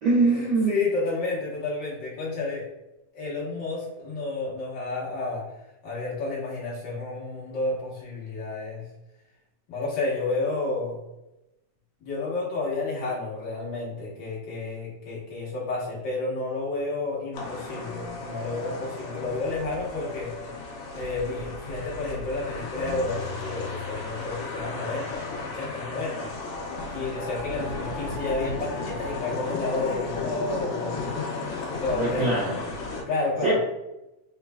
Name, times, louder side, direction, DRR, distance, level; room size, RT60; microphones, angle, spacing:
voice 1, 0.0-0.8 31.9-32.6 33.4-33.6, right 3 dB, 85° right, -8 dB, 1.1 m, -23 dB
voice 2, 0.7-2.6 3.1-5.4 5.8-8.8 9.7-11.0 12.0-20.3 20.9-26.3 26.9-31.1 31.8-32.3 33.1-33.6, left 3 dB, 60° left, -5 dB, 1.2 m, -31 dB
sound 1, 17.3-33.0, left 3 dB, 80° left, 1.3 m, -34 dB
4.3 x 3.8 x 2.3 m, 0.94 s
omnidirectional pair, 3.6 m